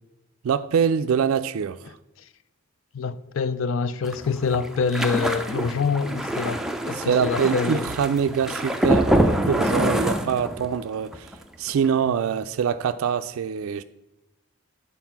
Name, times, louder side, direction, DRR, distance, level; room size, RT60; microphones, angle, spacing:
voice 1, 0.4-2.0 6.9-13.8, right 7 dB, 75° right, 0.3 m, -24 dB
voice 2, 2.9-7.8, left 5 dB, 60° left, 0.4 m, -26 dB
sound 1, 4.0-10.8 11.1-11.4 11.7-11.9, equal, ahead, 0.4 m, -25 dB
9.1 x 4.1 x 5.8 m
head